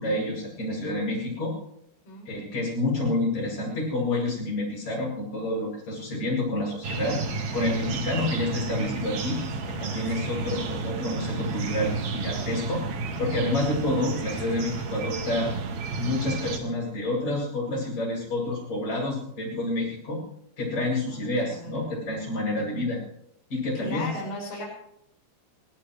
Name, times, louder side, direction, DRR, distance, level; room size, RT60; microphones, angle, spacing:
voice 1, 0.0-1.5 2.3-7.2 7.5-9.4 9.7-12.8 13.2-15.5 16.0-20.2 20.6-23.0 23.5-24.1, left 2 dB, 35° left, -4 dB, 9.2 m, -28 dB
voice 2, 2.0-2.6 10.1-10.5 21.1-21.7 23.8-24.7, left 2 dB, 75° left, -2 dB, 8.4 m, -38 dB
sound 1, 6.8-16.6, right 4 dB, 60° right, 1.9 m, -32 dB
22.5 x 18.5 x 3.4 m, 0.73 s
omnidirectional pair, 5.3 m